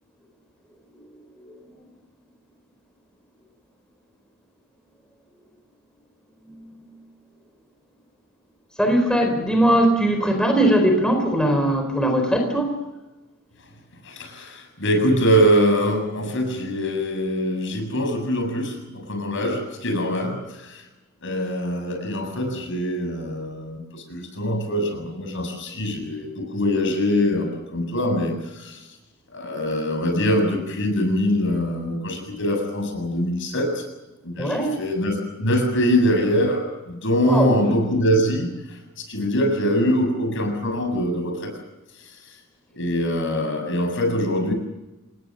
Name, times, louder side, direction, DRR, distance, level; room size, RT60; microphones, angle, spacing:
voice 1, 1.5-1.8 6.4-6.8 8.8-12.8 34.4-34.8 37.2-37.6, right 1 dB, 5° left, 3 dB, 4.4 m, -20 dB
voice 2, 14.0-20.8 21.2-28.8 29.3-33.8 34.2-38.5 39.0-41.5 42.8-44.5, equal, 65° left, 5 dB, 7.4 m, -23 dB
28.0 x 20.0 x 6.5 m, 1.0 s
head